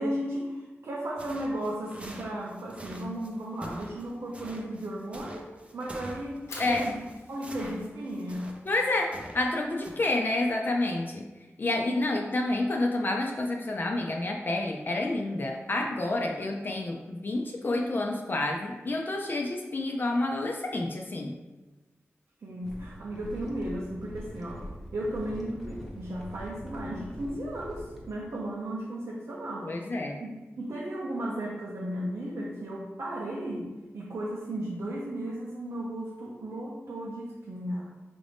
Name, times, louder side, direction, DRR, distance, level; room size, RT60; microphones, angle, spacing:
voice 1, 0.0-7.0 7.3-8.5 22.4-24.7 24.9-29.8 30.2-37.9, right 1 dB, 75° right, -4 dB, 0.6 m, -35 dB
sound 1, 1.2-9.5 9.8-10.1, right 1 dB, 25° right, 0.5 m, -45 dB
Fire, 6.4-12.4, left 2 dB, 85° left, 0.9 m, -51 dB
voice 2, 8.7-9.1 9.3-11.3 11.6-21.3 29.6-30.2, left 2 dB, 45° left, 1 dB, 0.4 m, -29 dB
sound 2, 22.6-28.2, equal, ahead, 0.9 m, -43 dB
5.0 x 2.6 x 3.4 m, 1.2 s
wide cardioid pair, 115°, 5 cm